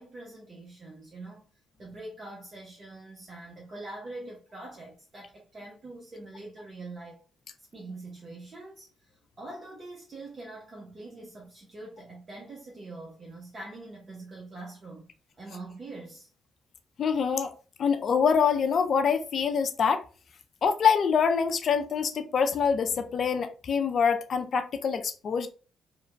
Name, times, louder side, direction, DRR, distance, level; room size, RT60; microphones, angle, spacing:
voice 1, 0.0-1.4 1.8-7.2 7.6-15.1 15.4-16.3, right 2 dB, 40° right, 0.7 m, -44 dB
voice 2, 17.0-17.5 17.8-20.0 20.6-25.5, left 6 dB, 60° left, 0.4 m, -25 dB
2.9 x 2.2 x 2.4 m
supercardioid pair, 55°, 0 cm